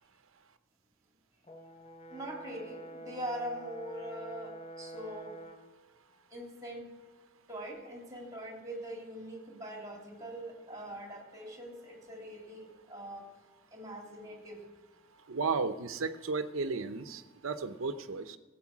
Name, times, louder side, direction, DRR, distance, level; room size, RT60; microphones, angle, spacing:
Brass instrument, 1.5-5.7, right 2 dB, 30° left, 0.8 m, -47 dB
voice 1, 2.1-5.4 6.3-7.0 7.5-13.3 13.7-14.6, right 1 dB, 15° right, 0 dB, 3.1 m, -42 dB
voice 2, 15.3-18.4, right 4 dB, 85° right, 10 dB, 0.8 m, -34 dB
16.0 x 8.0 x 6.1 m, 1.4 s
head